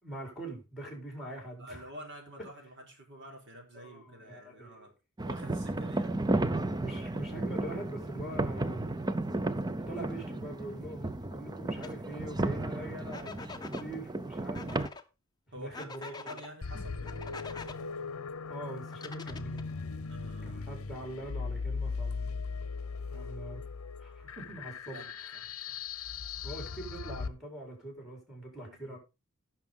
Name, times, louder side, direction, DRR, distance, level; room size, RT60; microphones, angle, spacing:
voice 1, 0.0-1.9 3.7-4.9 6.7-8.9 9.9-14.8 15.5-16.1 18.5-19.7 20.4-22.5 23.1-23.6 24.0-25.3 26.4-29.0, right 1 dB, ahead, 4.4 m, -43 dB
voice 2, 1.6-4.9 5.2-6.1 12.7-12.9 15.5-18.2 20.1-20.7 23.1-23.5 24.4-25.7 28.6-29.0, right 1 dB, 55° right, 3.7 m, -49 dB
sound 1, 5.2-14.9, right 2 dB, 20° right, 0.5 m, -34 dB
sound 2, 11.8-11.9 13.1-13.9 14.5-15.0 15.7-16.5 17.1-17.8 18.9-19.7, left 4 dB, 20° left, 0.8 m, -44 dB
sound 3, 16.6-27.3, left 4 dB, 75° left, 0.7 m, -38 dB
17.0 x 5.8 x 3.7 m
head